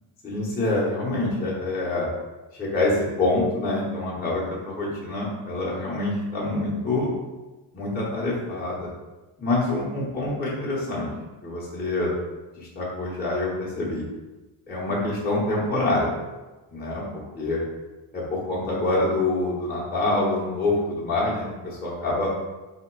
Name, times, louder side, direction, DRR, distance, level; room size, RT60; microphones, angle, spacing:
voice 1, 0.2-2.1 2.6-7.1 7.7-8.9 9.4-11.1 11.4-12.1 12.5-14.0 14.7-16.1 16.7-17.0 17.4-17.6 18.1-22.3, left 2 dB, 20° left, -7 dB, 0.9 m, -26 dB
3.4 x 2.9 x 4.5 m, 1.1 s
cardioid pair, 165°, 50 cm